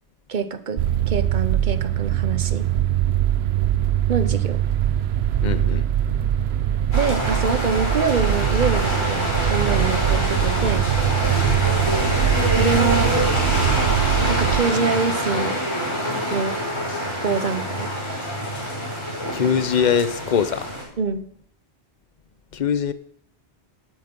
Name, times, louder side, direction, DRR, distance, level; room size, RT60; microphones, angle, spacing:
voice 1, 0.3-2.7 4.1-4.6 6.9-10.8 12.5-13.2 14.3-15.6 16.3-16.6 17.2-17.9 21.0-21.2, right 5 dB, 50° right, 0.9 m, -25 dB
sound 1, 0.8-14.6, right 11 dB, 75° right, 0.9 m, -22 dB
voice 2, 5.4-5.8 19.3-20.7 22.5-22.9, left 7 dB, 45° left, 0.8 m, -22 dB
sound 2, 6.9-20.8, equal, 25° left, 5.3 m, -25 dB
12.5 x 8.1 x 5.3 m
omnidirectional pair, 1.1 m